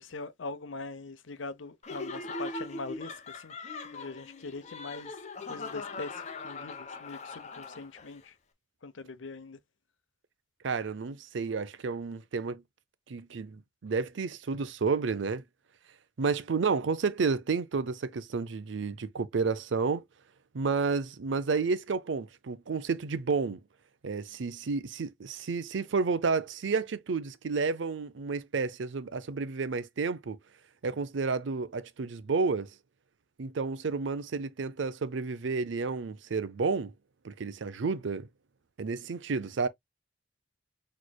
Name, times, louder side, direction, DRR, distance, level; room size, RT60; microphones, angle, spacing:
voice 1, 0.0-5.2 5.5-8.3 8.8-9.6, left 3 dB, 85° left, 0.8 m, -42 dB
Laughter, 1.8-8.2, left 3 dB, 40° left, 0.8 m, -41 dB
voice 2, 10.6-12.6 13.1-15.4 16.2-20.0 20.5-23.6 24.0-30.4 30.8-32.7 33.4-36.9 37.2-38.3 38.8-39.7, right 4 dB, 75° right, 0.5 m, -31 dB
6.3 x 3.2 x 2.2 m
head